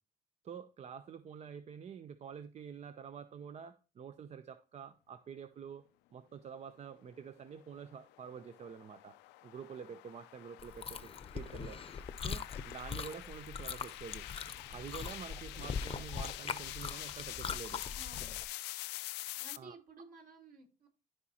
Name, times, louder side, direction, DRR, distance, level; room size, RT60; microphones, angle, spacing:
voice 1, 0.4-5.8 6.1-9.2 9.4-11.8 12.2-14.2 14.7-17.8 19.6-19.8, right 7 dB, 40° right, 0.6 m, -48 dB
sound 1, 7.5-19.6, left 17 dB, 90° left, 0.5 m, -46 dB
Chewing mastication, 10.6-18.4, left 6 dB, 35° left, 0.8 m, -42 dB
voice 2, 18.0-18.4 19.3-20.9, right 3 dB, 60° right, 3.8 m, -55 dB
14.0 x 5.0 x 2.9 m
cardioid pair, 110°, 17 cm